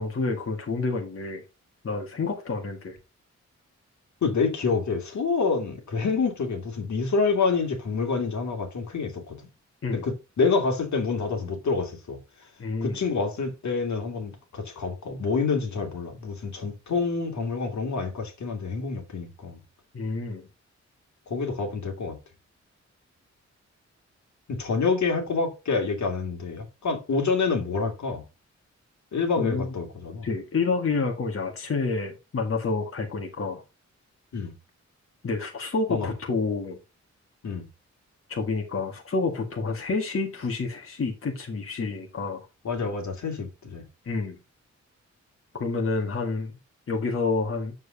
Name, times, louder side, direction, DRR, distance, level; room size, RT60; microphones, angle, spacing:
voice 1, 0.0-1.4 1.8-3.0 9.8-10.0 12.6-13.0 19.9-20.5 29.4-29.7 30.2-33.6 35.2-36.8 38.3-42.5 44.0-44.4 45.5-46.5 46.9-47.7, left 4 dB, 50° left, 1.9 m, -28 dB
voice 2, 4.2-9.4 10.0-12.2 12.8-19.6 21.3-22.2 24.5-28.2 29.1-30.3 34.3-34.5 35.9-36.1 37.4-37.7 42.6-43.9, left 4 dB, 75° left, 2.6 m, -27 dB
9.3 x 7.2 x 2.8 m
wide cardioid pair, 160°, 29 cm